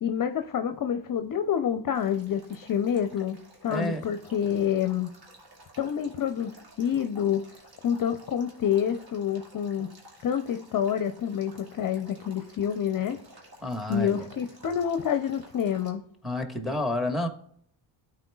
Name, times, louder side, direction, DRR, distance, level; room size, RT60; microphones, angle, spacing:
voice 1, 0.0-3.4 3.6-5.1 5.8-6.5 6.8-7.4 7.8-9.9 10.2-13.2 13.9-16.0, left 8 dB, 45° left, 8 dB, 0.6 m, -27 dB
Male speech man speaking / Stream / Trickle dribble, 1.9-15.9, right 1 dB, 50° right, 2.3 m, -53 dB
voice 2, 3.7-4.1 13.6-14.2 16.2-17.3, left 1 dB, ahead, 5 dB, 1.4 m, -30 dB
12.0 x 4.5 x 2.3 m, 0.65 s
supercardioid pair, 70°, 48 cm